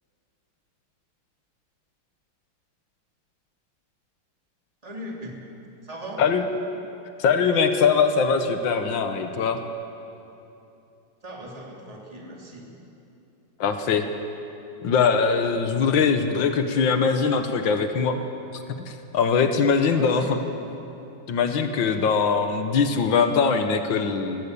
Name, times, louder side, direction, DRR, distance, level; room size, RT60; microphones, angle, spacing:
voice 1, 4.8-5.4 5.8-6.2 11.2-12.7 19.9-20.4, right 1 dB, 20° right, -2 dB, 3.4 m, -38 dB
voice 2, 7.2-9.6 13.6-14.1 14.8-18.2 18.5-20.4 21.3-24.4, left 5 dB, 75° left, 7 dB, 2.1 m, -22 dB
25.5 x 19.0 x 8.5 m, 2.8 s
omnidirectional pair, 2.1 m